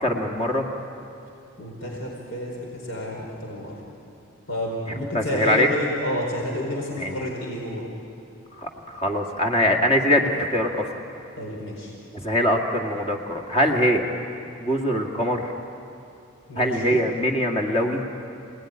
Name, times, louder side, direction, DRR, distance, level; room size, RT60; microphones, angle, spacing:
voice 1, 0.0-0.7 5.1-5.7 7.0-7.1 8.6-10.9 12.1-14.1 14.6-15.5 16.6-18.0, equal, 25° left, 2 dB, 2.1 m, -22 dB
voice 2, 1.6-3.7 4.5-7.9 11.4-11.9 16.5-17.0, left 1 dB, 60° left, -2 dB, 4.6 m, -30 dB
27.5 x 19.0 x 10.0 m, 2.8 s
head